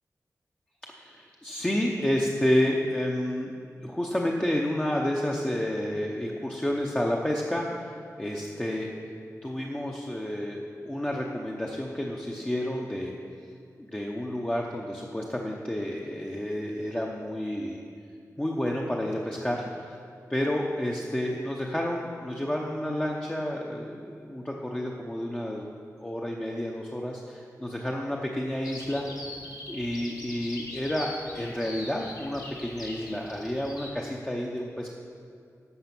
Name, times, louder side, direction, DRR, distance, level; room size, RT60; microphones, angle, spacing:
voice 1, 0.9-3.5 3.8-8.9 9.4-13.1 13.9-17.8 18.4-20.0 20.3-25.7 26.0-29.1 29.7-34.9, left 1 dB, 15° left, -1 dB, 0.8 m, -30 dB
Bird vocalization bird call bird song, 28.6-33.9, left 1 dB, 70° left, 1.7 m, -42 dB
11.0 x 6.7 x 6.0 m, 2.4 s
wide cardioid pair, 85°, 6 cm